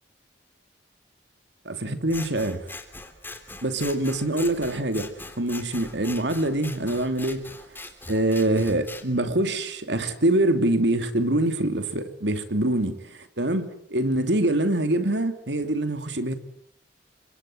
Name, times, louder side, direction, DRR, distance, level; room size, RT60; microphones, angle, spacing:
voice 1, 1.6-2.8 3.6-5.1 5.4-7.5 8.1-16.4, right 1 dB, 70° right, 2.9 m, -25 dB
Scissors, 2.1-9.0, left 2 dB, 10° left, 3.5 m, -41 dB
29.5 x 25.0 x 7.9 m
head